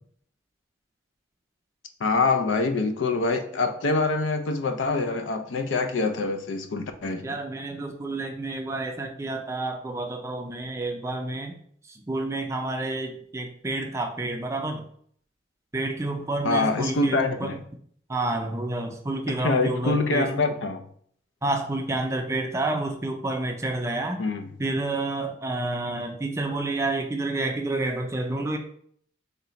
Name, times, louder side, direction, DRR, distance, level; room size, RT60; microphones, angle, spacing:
voice 1, 2.0-7.3 16.4-17.6 19.4-20.8 24.2-24.5, left 3 dB, 85° left, 7 dB, 0.5 m, -25 dB
voice 2, 7.2-11.6 11.9-14.9 15.7-17.6 18.1-20.3 21.4-24.2 24.6-28.6, right 2 dB, 15° right, 4 dB, 0.3 m, -29 dB
3.2 x 2.8 x 3.9 m, 0.62 s
head